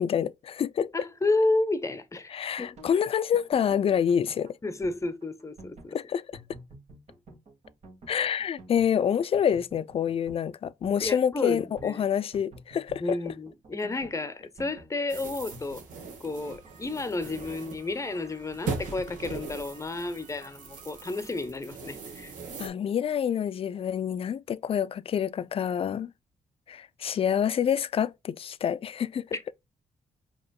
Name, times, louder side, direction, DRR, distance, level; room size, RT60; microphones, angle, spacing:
voice 1, 0.0-0.9 2.3-4.6 5.9-6.2 8.1-13.2 22.6-26.1 26.7-29.3, left 8 dB, 45° left, 0.4 m, -27 dB
voice 2, 0.9-2.8 4.6-6.0 11.0-12.0 13.0-15.8 16.2-22.3 29.3-29.5, left 2 dB, 25° left, 0.7 m, -31 dB
sound 1, 2.4-21.5, right 2 dB, 55° right, 1.9 m, -51 dB
sound 2, 15.1-22.7, right 4 dB, 90° right, 1.2 m, -40 dB
5.0 x 3.0 x 2.3 m
cardioid pair, 70°, 13 cm